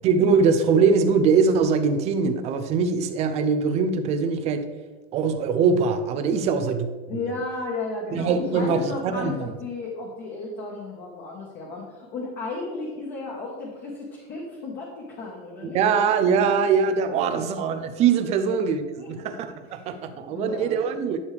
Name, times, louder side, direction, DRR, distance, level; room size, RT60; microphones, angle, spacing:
voice 1, 0.0-4.7 5.1-6.9 8.1-9.3 15.7-18.8 19.1-21.2, right 5 dB, 20° right, 8 dB, 0.5 m, -22 dB
voice 2, 7.1-15.8 17.1-17.4 18.4-18.5 19.0-19.5 20.3-20.8, left 3 dB, 30° left, -3 dB, 1.5 m, -34 dB
11.0 x 6.5 x 3.4 m, 1.3 s
supercardioid pair, 165°, 33 cm